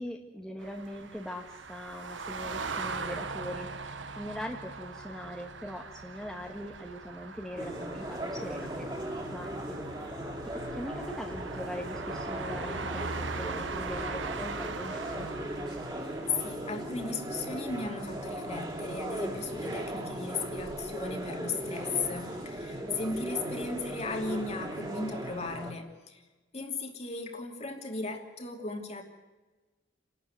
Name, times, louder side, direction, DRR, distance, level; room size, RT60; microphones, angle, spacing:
voice 1, 0.0-8.9 9.2-10.2 10.7-15.3, equal, ahead, 0 dB, 1.6 m, -41 dB
sound 1, 0.6-16.5, right 4 dB, 70° right, 1.3 m, -40 dB
sound 2, 7.6-25.7, right 1 dB, 20° right, 3.4 m, -38 dB
voice 2, 16.1-26.2 26.5-29.0, left 3 dB, 35° left, 3 dB, 2.8 m, -36 dB
30.0 x 12.5 x 9.6 m, 1.2 s
head